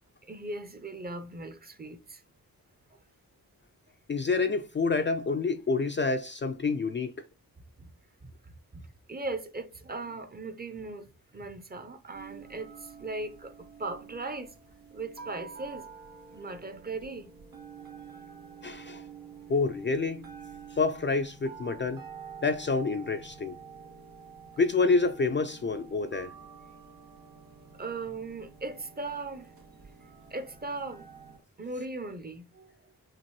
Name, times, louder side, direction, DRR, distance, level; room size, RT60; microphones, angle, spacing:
voice 1, 0.2-2.2 2.9-3.0 7.8-7.9 8.2-14.5 14.9-15.9 16.3-17.3 18.1-18.3 23.8-23.9 27.7-29.5 30.3-31.1 31.6-32.9, right 3 dB, 25° right, 0.6 m, -39 dB
voice 2, 4.1-7.1 18.6-19.0 19.5-20.2 20.7-22.0 22.4-23.6 24.6-26.3, left 4 dB, 35° left, 0.4 m, -28 dB
sound 1, 12.1-31.4, right 6 dB, 75° right, 1.5 m, -49 dB
5.9 x 2.5 x 3.0 m
cardioid pair, 80°, 35 cm